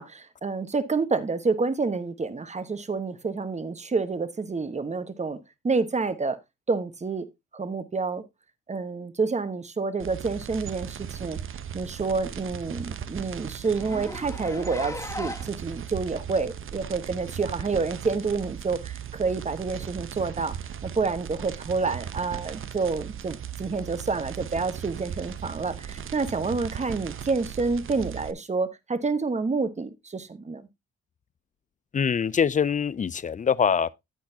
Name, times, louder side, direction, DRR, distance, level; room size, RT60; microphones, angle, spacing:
voice 1, 0.0-5.4 5.6-6.4 6.7-7.3 7.5-8.2 8.7-11.4 11.7-20.6 20.8-30.6, right 4 dB, 25° right, 1.1 m, -28 dB
sound 1, 10.0-28.3, right 9 dB, 45° right, 0.7 m, -37 dB
Zipper (clothing), 11.2-11.3 11.6-11.7 12.0-12.1 12.5-12.6 12.8-13.0 13.7-15.6 16.4-16.5 17.5-17.6, left 1 dB, 10° left, 1.9 m, -38 dB
voice 2, 31.9-33.9, left 7 dB, 25° left, 0.4 m, -24 dB
10.0 x 8.5 x 2.7 m
cardioid pair, 90°, 30 cm